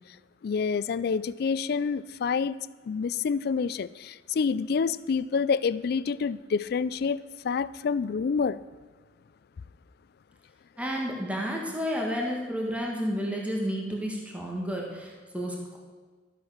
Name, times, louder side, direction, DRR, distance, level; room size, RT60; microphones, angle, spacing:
voice 1, 0.4-2.6 2.9-8.6, left 5 dB, 60° left, 18 dB, 0.4 m, -28 dB
voice 2, 10.8-15.8, equal, 10° right, -2 dB, 1.6 m, -31 dB
12.5 x 7.7 x 5.7 m, 1.4 s
head